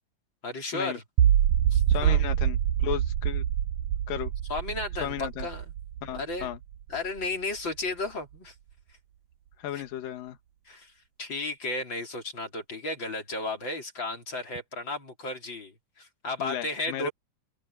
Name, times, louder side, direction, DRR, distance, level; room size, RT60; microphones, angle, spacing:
voice 1, 0.4-1.0 1.7-2.2 4.5-5.6 6.1-6.5 6.9-8.5 9.7-9.8 10.7-10.9 11.2-17.1, left 2 dB, 30° left, 4.3 m, -34 dB
sound 1, 1.2-7.3, right 10 dB, 75° right, 1.6 m, -25 dB
voice 2, 1.9-3.4 4.1-4.3 5.0-5.5 6.0-6.6 9.6-10.4 16.4-17.1, left 11 dB, 75° left, 3.3 m, -34 dB
open air
omnidirectional pair, 4.1 m